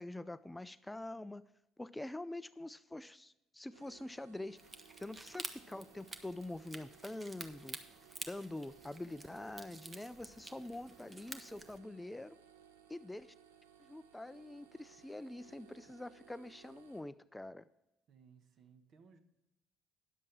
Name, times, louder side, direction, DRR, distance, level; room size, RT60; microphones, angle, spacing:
voice 1, 0.0-1.4 1.8-4.6 5.0-7.8 8.3-12.4 12.9-13.3 13.8-17.6, left 1 dB, 10° left, 15 dB, 0.3 m, -45 dB
sound 1, 3.7-17.0, right 9 dB, 85° right, 0.8 m, -62 dB
sound 2, 4.6-11.8, right 2 dB, 25° right, 1.1 m, -50 dB
voice 2, 18.1-19.2, right 6 dB, 55° right, 8 dB, 1.1 m, -62 dB
10.0 x 7.6 x 4.6 m, 0.93 s
hypercardioid pair, 60°, 0 cm